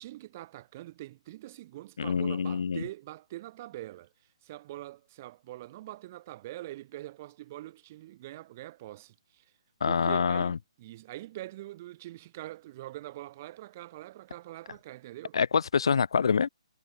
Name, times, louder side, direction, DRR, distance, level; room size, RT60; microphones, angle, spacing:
voice 1, 0.0-4.1 4.4-9.5 9.8-15.4, right 16 dB, 20° right, 5.5 m, -44 dB
voice 2, 2.0-2.8 9.8-10.6 15.3-16.5, left 6 dB, 50° left, 1.6 m, -26 dB
hypercardioid pair, 175°, 3 cm